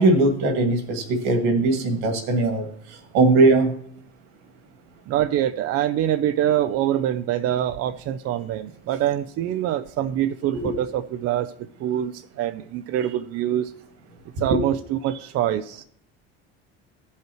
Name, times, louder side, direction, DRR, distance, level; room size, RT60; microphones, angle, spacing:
voice 1, 0.0-3.7 10.5-10.7 14.5-14.6, right 2 dB, 75° right, 4 dB, 2.1 m, -20 dB
voice 2, 5.1-11.5 11.8-13.7 14.4-15.8, right 11 dB, 55° right, 10 dB, 0.5 m, -25 dB
15.0 x 5.6 x 3.0 m, 0.65 s
supercardioid pair, 80°, 30 cm